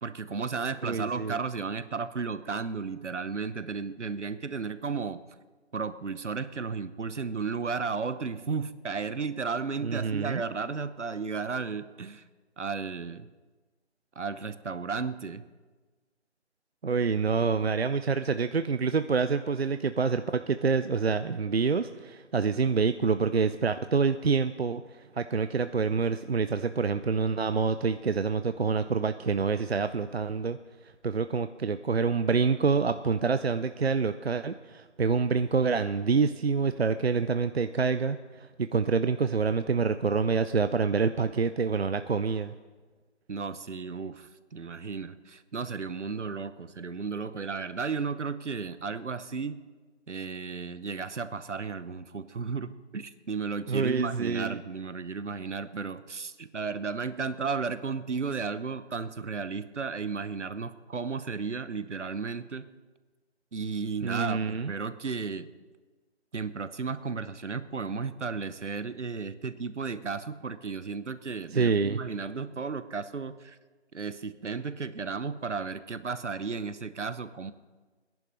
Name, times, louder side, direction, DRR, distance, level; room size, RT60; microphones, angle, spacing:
voice 1, 0.0-5.2 5.7-12.2 12.6-13.3 14.2-15.4 43.3-49.6 50.1-62.7 63.5-65.5 66.3-73.6 73.9-77.5, right 5 dB, 80° right, 13 dB, 1.0 m, -34 dB
voice 2, 0.8-1.4 9.8-10.4 16.8-24.8 25.2-30.6 31.0-42.5 53.7-54.6 64.0-64.7 71.5-72.0, right 5 dB, 60° right, 10 dB, 0.6 m, -27 dB
18.5 x 11.0 x 5.3 m, 1.3 s
figure-of-eight pair, 175°, 35 cm